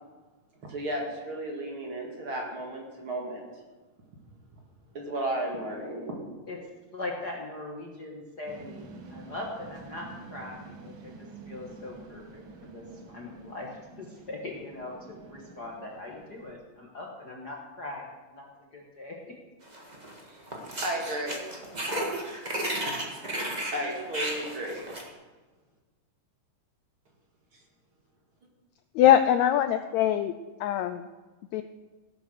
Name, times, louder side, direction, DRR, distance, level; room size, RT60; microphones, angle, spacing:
voice 1, 0.6-3.4 4.9-6.1 20.2-20.4 20.8-21.4 23.7-24.9, right 1 dB, 40° right, 0 dB, 2.7 m, -33 dB
voice 2, 6.9-11.1 11.5-18.5 18.7-19.3, left 2 dB, 45° left, -1 dB, 1.5 m, -40 dB
sound 1, 8.5-16.5, right 3 dB, 60° right, 1.4 m, -48 dB
sound 2, 19.7-20.2 20.5-25.1, right 1 dB, 20° right, 1.4 m, -33 dB
voice 3, 28.9-30.3 30.6-31.1 31.5-31.6, left 11 dB, 85° left, 10 dB, 1.6 m, -22 dB
16.5 x 8.6 x 6.5 m, 1.3 s
omnidirectional pair, 3.8 m